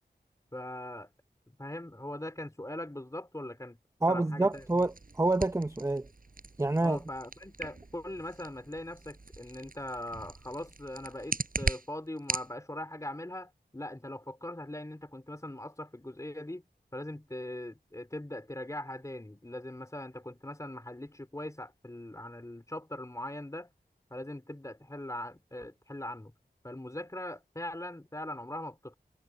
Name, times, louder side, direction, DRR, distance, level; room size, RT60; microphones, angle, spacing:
voice 1, 0.5-1.1 1.5-3.8 4.1-4.9 6.8-16.6 16.9-23.7 24.1-26.3 26.6-29.0, left 1 dB, 20° left, 3.2 m, -41 dB
voice 2, 4.0-6.1 6.6-7.0, right 2 dB, 15° right, 0.6 m, -27 dB
sound 1, 4.5-12.5, right 3 dB, 55° right, 7.0 m, -39 dB
wide cardioid pair, 75°, 17 cm